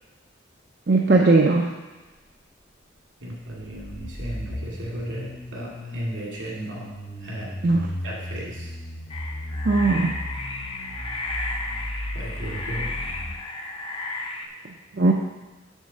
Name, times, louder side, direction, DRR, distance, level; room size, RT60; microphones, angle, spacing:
voice 1, 0.9-1.7 7.6-7.9 9.6-10.2 14.9-15.1, right 3 dB, 50° right, 0 dB, 0.5 m, -18 dB
voice 2, 3.2-6.9 7.2-7.6 8.0-8.7 12.1-12.9, right 1 dB, 75° right, -4 dB, 2.4 m, -35 dB
sound 1, 3.6-13.3, left 1 dB, 45° left, 0.9 m, -35 dB
sound 2, 9.1-14.5, left 2 dB, 25° left, 0.6 m, -33 dB
7.3 x 3.7 x 6.3 m, 1.2 s
head